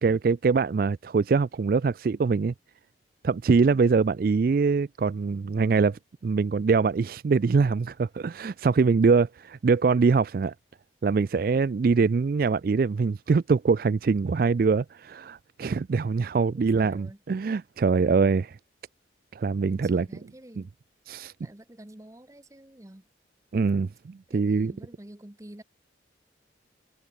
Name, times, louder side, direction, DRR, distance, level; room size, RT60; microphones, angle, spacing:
voice 1, 0.0-2.5 3.2-10.5 11.0-18.6 19.3-20.1 20.6-20.7 21.1-21.3 23.5-24.7, right 4 dB, 50° right, 0.3 m, -23 dB
voice 2, 16.5-17.2 19.7-20.7 21.4-23.0 24.3-25.6, right 1 dB, 15° right, 0.9 m, -47 dB
head